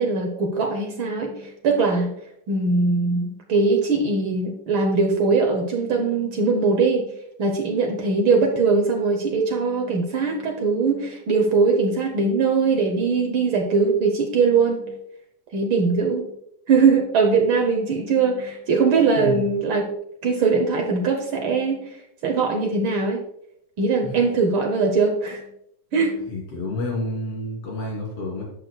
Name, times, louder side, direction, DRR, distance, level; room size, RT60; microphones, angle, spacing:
voice 1, 0.0-2.1 2.5-7.1 7.4-14.9 15.5-16.3 16.7-19.9 20.2-21.8 22.2-23.2 23.8-25.4 25.9-26.3, right 4 dB, 75° right, 2 dB, 1.1 m, -21 dB
voice 2, 19.2-19.5 24.0-24.1 26.3-28.4, left 1 dB, 50° left, -4 dB, 3.9 m, -29 dB
11.0 x 6.4 x 2.3 m, 0.75 s
omnidirectional pair, 3.4 m